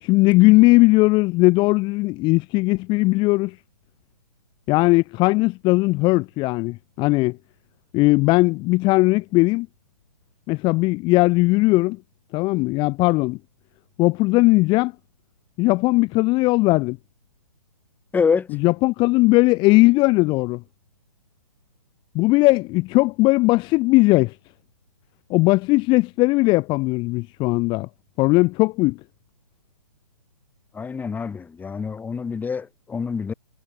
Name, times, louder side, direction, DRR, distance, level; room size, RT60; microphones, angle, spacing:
voice 1, 0.0-3.6 4.7-7.4 7.9-9.7 10.5-12.0 12.3-13.4 14.0-14.9 15.6-17.0 18.5-20.6 22.1-24.3 25.3-27.9 28.2-29.0, left 22 dB, 25° left, 4.2 m, -18 dB
voice 2, 18.1-18.5 30.8-33.3, left 5 dB, 10° left, 5.9 m, -25 dB
figure-of-eight pair, 135°, 20 cm